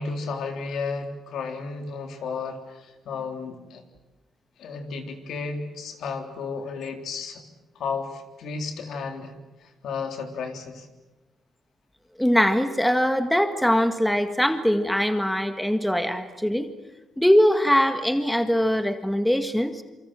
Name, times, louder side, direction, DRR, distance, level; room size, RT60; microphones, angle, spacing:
voice 1, 0.0-3.8 4.6-7.4 7.8-9.3 9.6-10.9, left 4 dB, 70° left, 5 dB, 3.6 m, -33 dB
voice 2, 12.2-16.7 17.2-19.8, equal, 5° left, 8 dB, 1.8 m, -22 dB
27.5 x 24.5 x 7.7 m, 1.1 s
cardioid pair, 90°, 0 cm